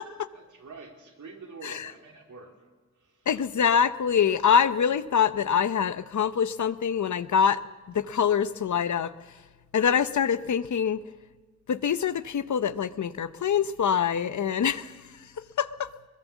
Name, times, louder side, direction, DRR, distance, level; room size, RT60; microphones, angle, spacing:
voice 1, 0.3-2.5 3.0-3.3, right 4 dB, 90° right, 1 dB, 3.4 m, -46 dB
voice 2, 3.3-7.6 7.9-9.1 9.7-11.0 11.7-14.9 15.6-15.9, left 7 dB, 80° left, 14 dB, 0.8 m, -24 dB
21.5 x 20.5 x 7.3 m, 1.3 s
wide cardioid pair, 140°, 29 cm